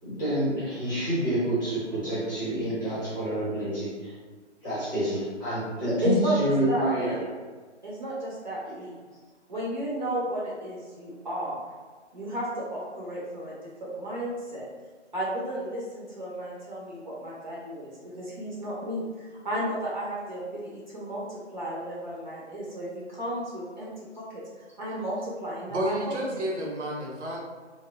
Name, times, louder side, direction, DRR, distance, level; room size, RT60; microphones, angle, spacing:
voice 1, 0.0-4.1 4.6-7.2, right 1 dB, 15° left, -12 dB, 0.9 m, -28 dB
voice 2, 6.0-7.2 7.8-8.9 9.5-11.6 12.1-13.5 13.8-14.6 15.1-21.2 21.5-23.9 24.1-25.9, right 1 dB, 40° right, -7 dB, 0.6 m, -33 dB
voice 3, 25.7-27.4, right 1 dB, 70° right, -2 dB, 0.8 m, -30 dB
2.6 x 2.0 x 2.4 m, 1.4 s
figure-of-eight pair, 150°, 36 cm